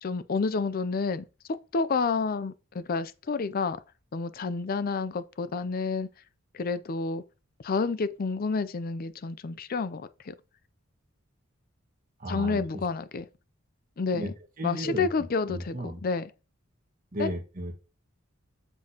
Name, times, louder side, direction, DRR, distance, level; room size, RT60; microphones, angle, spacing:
voice 1, 0.0-1.2 1.7-3.8 4.1-6.1 6.5-7.2 7.6-10.3 12.3-13.3 14.0-14.3 14.6-16.3 17.2-17.3, left 4 dB, 45° left, 0.5 m, -29 dB
voice 2, 12.2-12.6 14.1-14.3 14.6-15.1 15.5-16.0 17.1-17.7, equal, 40° right, 1.6 m, -34 dB
7.7 x 7.2 x 2.9 m
head